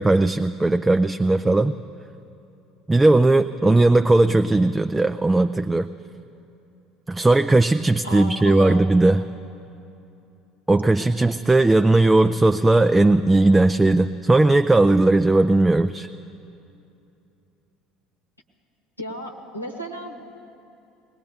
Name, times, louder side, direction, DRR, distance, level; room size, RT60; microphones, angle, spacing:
voice 1, 0.0-1.7 2.9-5.9 7.1-9.2 10.7-16.1, right 2 dB, 15° right, 9 dB, 0.3 m, -17 dB
voice 2, 8.0-8.8 19.0-20.2, left 1 dB, 90° left, 2 dB, 1.1 m, -34 dB
21.5 x 18.5 x 3.6 m, 2.7 s
figure-of-eight pair, 65°, 0 cm